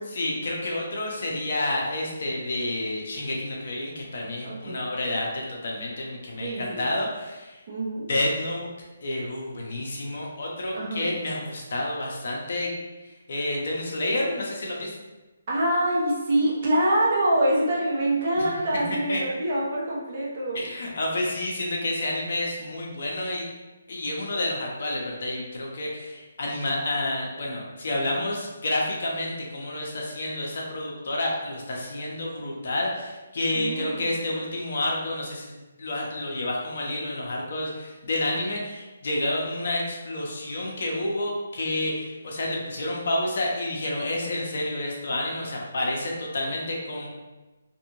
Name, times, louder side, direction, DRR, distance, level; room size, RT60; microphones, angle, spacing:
voice 1, 0.1-7.6 8.1-8.7 9.0-12.7 13.3-14.9 18.4-18.5 19.1-19.2 20.5-23.4 23.9-47.1, left 1 dB, 60° left, -2 dB, 0.7 m, -29 dB
voice 2, 4.4-4.8 6.4-6.9 7.7-8.1 10.7-11.1 15.5-20.6 33.5-34.1, right 1 dB, 40° right, -6 dB, 0.9 m, -25 dB
2.6 x 2.5 x 2.9 m, 1.1 s
hypercardioid pair, 155°, 0 cm